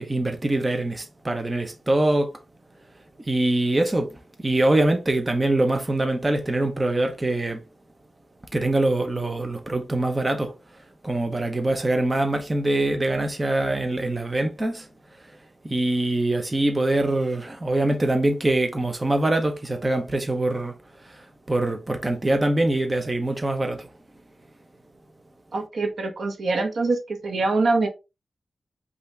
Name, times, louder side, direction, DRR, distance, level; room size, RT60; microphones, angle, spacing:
voice 1, 0.0-2.3 3.3-7.6 8.5-10.5 11.0-14.9 15.6-20.7 21.1-23.9, right 2 dB, 25° right, 0.8 m, -24 dB
voice 2, 25.5-27.9, right 3 dB, 80° right, 1.2 m, -24 dB
5.5 x 2.7 x 3.4 m
wide cardioid pair, 90°, 0 cm